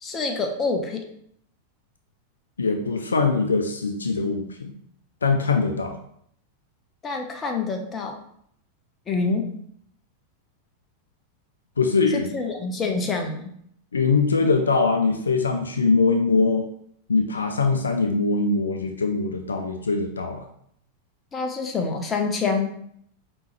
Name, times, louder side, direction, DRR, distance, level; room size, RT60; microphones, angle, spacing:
voice 1, 0.0-1.0 7.0-8.2 9.1-9.5 12.1-13.5 21.3-22.7, left 4 dB, 20° left, 4 dB, 0.7 m, -26 dB
voice 2, 2.6-4.7 5.2-5.9 11.8-12.3 13.9-16.7 17.1-20.4, left 4 dB, 75° left, 6 dB, 0.4 m, -22 dB
5.2 x 3.0 x 3.1 m, 0.69 s
figure-of-eight pair, 90°, 0 cm